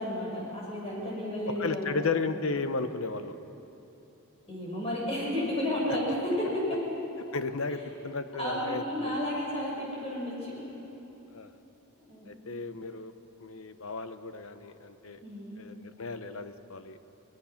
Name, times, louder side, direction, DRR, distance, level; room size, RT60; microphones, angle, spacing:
voice 1, 0.0-2.1 4.5-6.8 8.4-10.7 12.1-12.6 15.2-15.6, left 1 dB, 25° left, -4 dB, 6.4 m, -32 dB
voice 2, 1.6-3.3 7.3-9.2 11.3-11.5 12.3-13.1 13.4-15.2 15.6-17.0, left 4 dB, 65° left, 10 dB, 0.9 m, -34 dB
22.5 x 20.0 x 5.9 m, 3.0 s
head